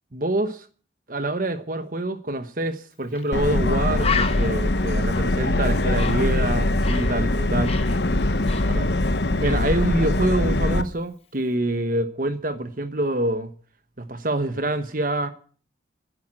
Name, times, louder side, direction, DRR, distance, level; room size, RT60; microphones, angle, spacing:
voice 1, 0.1-0.7 1.1-7.8 8.7-8.9 9.4-13.5 14.0-15.3, right 1 dB, 50° right, 1.2 m, -26 dB
Bird, 3.1-3.3 3.6-3.7 4.0-7.2 7.4-9.1 9.4-9.7, left 6 dB, 35° left, 1.2 m, -32 dB
Subway metro underground, 3.3-10.8, left 2 dB, 70° left, 1.0 m, -22 dB
11.0 x 10.5 x 9.0 m
head